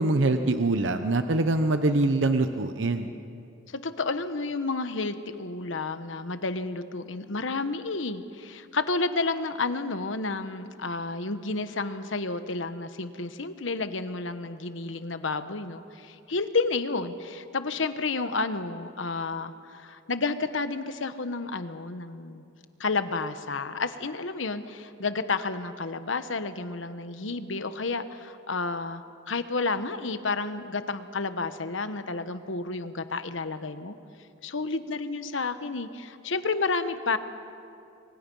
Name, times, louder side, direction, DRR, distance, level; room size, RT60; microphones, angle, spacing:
voice 1, 0.0-3.1, right 2 dB, 70° right, 8 dB, 0.8 m, -24 dB
voice 2, 3.7-22.4 22.8-33.9 34.4-37.2, left 3 dB, 75° left, 10 dB, 1.1 m, -31 dB
29.0 x 23.5 x 5.5 m, 2.6 s
head